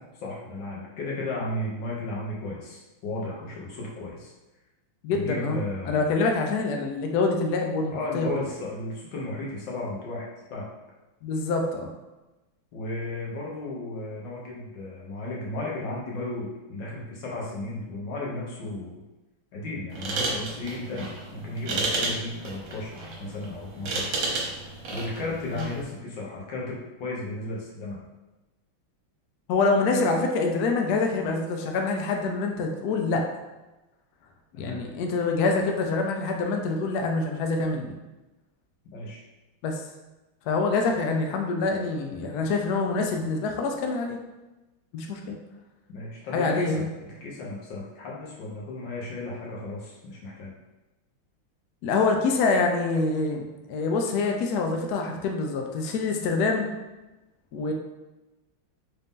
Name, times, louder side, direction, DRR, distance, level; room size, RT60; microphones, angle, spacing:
voice 1, 0.1-4.3 5.1-6.2 7.9-10.7 12.7-19.0 19.5-24.2 24.9-28.0 34.6-34.8 38.9-39.2 45.9-50.5, left 2 dB, 65° left, -4 dB, 1.6 m, -34 dB
voice 2, 5.0-5.6 5.8-8.3 11.2-11.9 25.6-25.7 29.5-33.3 34.6-38.0 39.6-39.8 40.5-44.2 44.9-45.4 46.3-46.9 51.8-56.7 57.5-57.7, left 3 dB, 85° left, 2 dB, 0.8 m, -26 dB
sound 1, 19.9-25.8, right 3 dB, 75° right, 1.6 m, -32 dB
4.1 x 2.6 x 3.5 m, 1.1 s
omnidirectional pair, 2.3 m